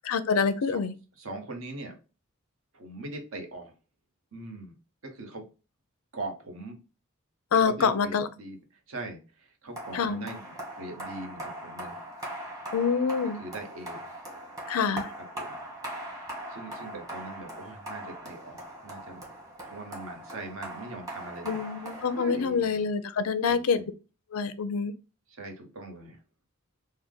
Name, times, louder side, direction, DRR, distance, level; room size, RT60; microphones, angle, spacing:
voice 1, 0.0-0.9 7.5-8.3 9.9-10.3 12.7-13.4 14.7-15.1 21.4-23.8 24.3-24.9, left 5 dB, 85° left, 0.4 m, -26 dB
voice 2, 1.2-1.9 2.7-3.7 4.3-4.8 5.0-5.4 6.1-6.8 7.5-8.6 8.9-10.4 10.7-12.0 13.3-14.1 15.3-15.6 16.5-19.2 19.6-21.6 22.1-22.8 23.5-23.9 25.3-26.2, right 2 dB, 70° right, 1.0 m, -41 dB
sound 1, 9.8-22.8, right 1 dB, 15° right, 1.1 m, -41 dB
3.3 x 2.2 x 3.7 m
head